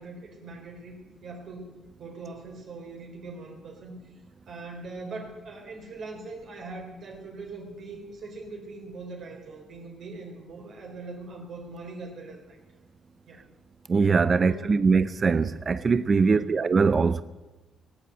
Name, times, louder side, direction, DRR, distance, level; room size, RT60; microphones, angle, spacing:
voice 1, 0.0-4.0 4.5-12.6 13.3-13.4 14.3-14.8 16.2-16.6, right 3 dB, 60° right, 4.2 m, -41 dB
voice 2, 13.9-17.2, right 5 dB, 35° right, 0.5 m, -22 dB
18.5 x 8.3 x 8.1 m
cardioid pair, 90°, 0 cm